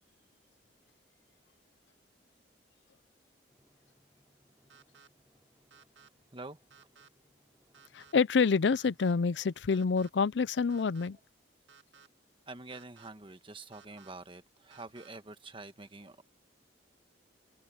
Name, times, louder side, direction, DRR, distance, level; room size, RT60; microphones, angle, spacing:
Drum, 3.5-9.6, equal, 10° right, 3.0 m, -71 dB
sound 1, 4.7-5.1 5.7-6.1 6.7-7.1 7.7-8.1 8.7-9.1 9.7-10.1 10.7-11.1 11.7-12.1 12.7-13.1 13.7-14.1 14.7-15.1, right 5 dB, 90° right, 1.8 m, -58 dB
voice 1, 7.9-11.2, left 5 dB, 70° left, 0.5 m, -27 dB
voice 2, 12.5-16.2, right 3 dB, 30° right, 1.5 m, -46 dB
open air
head